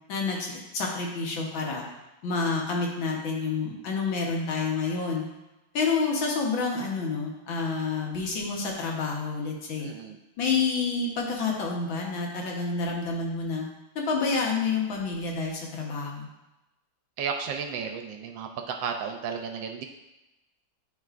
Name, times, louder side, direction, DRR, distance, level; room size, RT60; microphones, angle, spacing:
voice 1, 0.1-1.8 2.2-5.2 5.7-9.9 10.4-13.7 14.0-16.3, left 4 dB, 75° left, -1 dB, 1.8 m, -28 dB
voice 2, 9.8-10.2 17.2-19.8, right 6 dB, 75° right, 5 dB, 1.2 m, -33 dB
10.5 x 3.7 x 2.5 m, 0.99 s
omnidirectional pair, 2.2 m